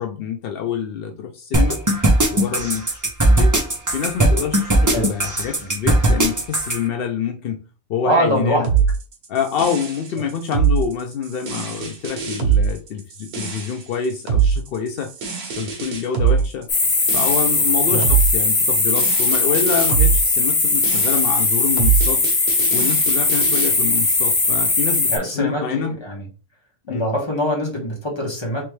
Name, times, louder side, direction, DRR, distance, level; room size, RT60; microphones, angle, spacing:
voice 1, 0.0-1.8 2.3-3.5 3.9-7.6 7.9-8.7 9.3-15.1 15.6-16.7 17.1-22.2 22.7-25.9 26.9-27.1, left 7 dB, 75° left, 5 dB, 0.5 m, -26 dB
sound 1, 1.5-6.8, right 1 dB, 30° right, 0.3 m, -17 dB
voice 2, 8.0-8.6 17.9-18.1 25.1-26.3 26.9-28.6, equal, 20° left, -2 dB, 1.2 m, -23 dB
sound 2, 8.6-23.7, right 7 dB, 90° right, 1.5 m, -23 dB
sound 3, 16.7-25.2, left 3 dB, 45° left, 1.0 m, -19 dB
3.4 x 3.2 x 3.1 m, 0.34 s
omnidirectional pair, 1.5 m